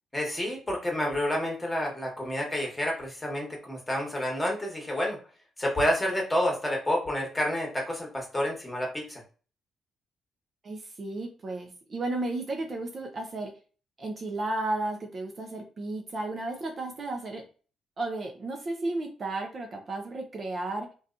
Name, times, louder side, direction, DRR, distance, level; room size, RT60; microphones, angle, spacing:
voice 1, 0.1-5.2 5.6-9.2, left 1 dB, 10° left, -1 dB, 1.2 m, -29 dB
voice 2, 10.6-13.6 14.0-17.5 18.0-20.9, right 2 dB, 40° right, 3 dB, 0.5 m, -33 dB
2.7 x 2.3 x 2.5 m, 0.37 s
cardioid pair, 90°, 0 cm